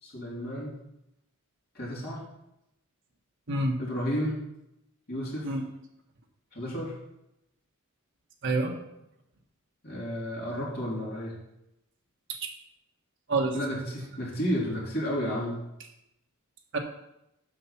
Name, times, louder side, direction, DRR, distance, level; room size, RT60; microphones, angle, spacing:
voice 1, 0.0-0.8 1.7-2.3 3.8-4.4 5.1-5.5 6.5-7.0 9.8-11.4 13.5-15.6, equal, 50° left, -5 dB, 3.5 m, -32 dB
voice 2, 3.5-3.8 5.4-5.7 8.4-8.7 12.3-12.5 13.3-13.5 16.7-16.8, right 2 dB, 60° right, 1 dB, 1.3 m, -27 dB
7.8 x 5.7 x 5.9 m, 0.85 s
head